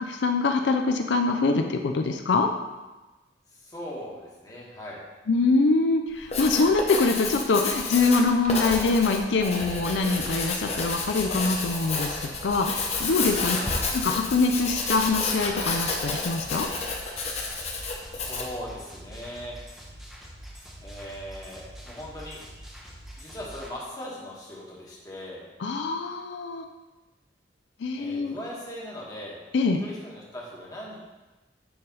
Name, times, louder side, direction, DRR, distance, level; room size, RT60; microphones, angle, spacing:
voice 1, 0.2-2.5 5.3-13.6 13.9-16.7 25.6-26.6 27.8-28.4 29.5-29.8, left 3 dB, 85° left, 5 dB, 0.5 m, -24 dB
voice 2, 3.5-5.0 13.5-13.8 18.1-19.6 20.8-22.4 23.2-25.4 28.0-29.4 29.8-31.0, equal, 20° left, -5 dB, 1.4 m, -39 dB
Writing, 6.1-18.6, left 3 dB, 35° left, 0.8 m, -30 dB
sound 1, 9.6-23.7, equal, ahead, 0.9 m, -45 dB
7.0 x 3.3 x 5.4 m, 1.1 s
head